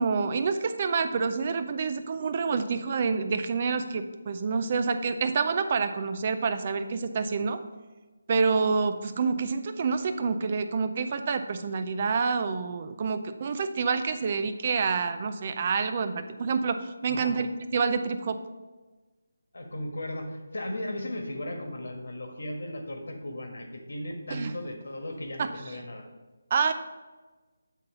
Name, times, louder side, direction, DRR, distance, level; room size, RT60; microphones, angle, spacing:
voice 1, 0.0-7.6 8.3-17.5 17.7-18.4 24.3-24.5 25.4-25.5 26.5-26.7, right 5 dB, 25° right, 9 dB, 0.3 m, -27 dB
voice 2, 19.5-26.1, left 1 dB, 70° left, 3 dB, 1.4 m, -36 dB
8.3 x 4.0 x 5.5 m, 1.2 s
figure-of-eight pair, 175°, 0 cm